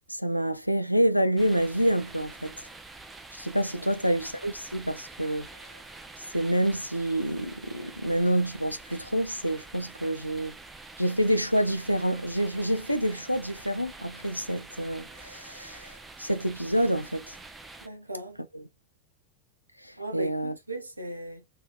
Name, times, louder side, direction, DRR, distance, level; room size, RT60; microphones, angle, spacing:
voice 1, 0.1-2.5 3.3-5.5 6.3-10.6 11.0-17.4 18.5-18.6 19.8-20.6, equal, 90° left, 0.4 m, -27 dB
sound 1, 1.4-17.9, right 3 dB, 10° right, 0.5 m, -47 dB
voice 2, 17.8-18.4 20.0-21.4, right 1 dB, 85° right, 0.6 m, -38 dB
2.7 x 2.7 x 2.3 m
figure-of-eight pair, 90°, 0 cm